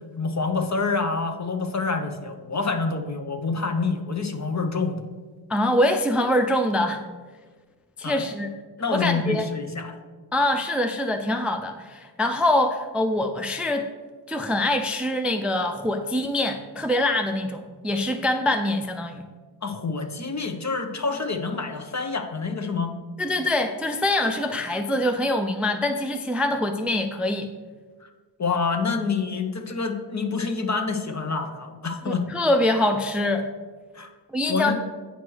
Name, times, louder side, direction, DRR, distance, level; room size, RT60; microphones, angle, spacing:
voice 1, 0.2-5.0 8.0-8.2 8.8-10.0 19.6-22.9 28.0-28.1 28.4-32.3 33.9-34.1 34.5-34.7, left 4 dB, 40° left, 6 dB, 0.7 m, -27 dB
voice 2, 5.5-7.0 8.0-8.5 8.9-9.5 10.3-13.9 14.3-19.2 23.2-27.5 32.1-33.5 34.3-34.7, left 1 dB, 5° right, 6 dB, 0.4 m, -24 dB
8.3 x 3.1 x 6.2 m, 1.4 s
wide cardioid pair, 85°, 42 cm